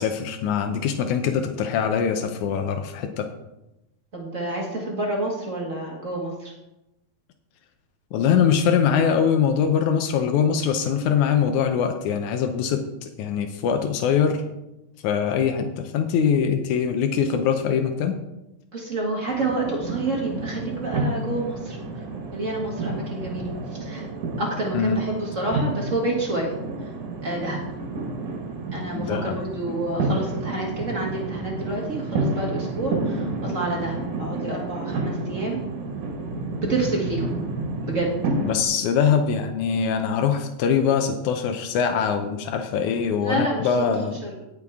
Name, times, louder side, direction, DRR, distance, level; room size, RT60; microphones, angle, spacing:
voice 1, 0.0-3.3 8.1-14.4 15.0-18.2 24.7-25.0 28.9-29.4 38.4-44.2, left 7 dB, 85° left, 6 dB, 1.6 m, -23 dB
voice 2, 4.1-6.5 18.7-21.8 22.3-23.5 23.8-24.0 24.4-26.5 27.2-27.6 28.7-35.6 36.6-37.3 37.8-38.2 43.2-43.7 43.9-44.4, right 2 dB, 40° right, -2 dB, 1.1 m, -28 dB
sound 1, 19.3-38.7, right 2 dB, 60° right, 2.8 m, -30 dB
17.5 x 6.5 x 3.6 m, 0.94 s
omnidirectional pair, 4.4 m